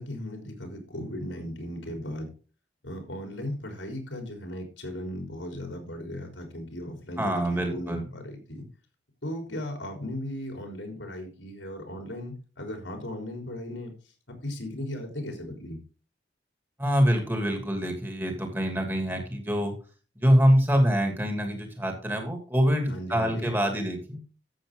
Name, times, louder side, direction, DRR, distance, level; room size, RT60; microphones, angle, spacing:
voice 1, 0.0-2.3 2.8-8.7 9.2-13.9 14.3-15.8 22.9-23.5, left 1 dB, 85° left, 3 dB, 4.0 m, -37 dB
voice 2, 7.2-8.1 16.8-19.7 20.2-24.2, equal, 10° right, 3 dB, 2.6 m, -25 dB
13.0 x 7.8 x 3.8 m, 0.36 s
head